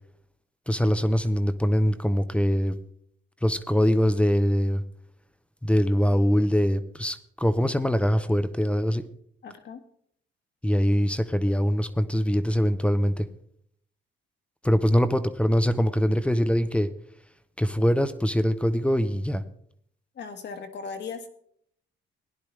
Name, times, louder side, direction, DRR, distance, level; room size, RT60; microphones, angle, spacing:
voice 1, 0.7-2.8 3.4-4.8 5.6-9.0 10.6-13.3 14.6-16.9 17.6-19.4, equal, 5° left, 12 dB, 0.8 m, -23 dB
voice 2, 9.4-9.8 20.2-21.3, left 5 dB, 60° left, 6 dB, 1.8 m, -37 dB
17.5 x 10.5 x 3.3 m, 0.66 s
cardioid pair, 90°, 20 cm